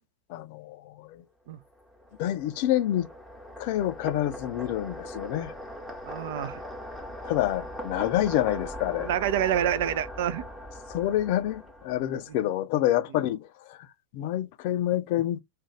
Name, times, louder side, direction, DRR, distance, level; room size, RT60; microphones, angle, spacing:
voice 1, 0.3-1.2 2.2-3.1 3.6-5.5 7.2-9.1 10.9-13.9 14.1-15.4, left 13 dB, 45° left, 0.4 m, -27 dB
sound 1, 1.7-12.3, equal, 5° right, 0.7 m, -40 dB
voice 2, 6.1-6.6 9.0-10.4, right 10 dB, 55° right, 0.3 m, -27 dB
2.4 x 2.2 x 3.0 m
figure-of-eight pair, 90°, 0 cm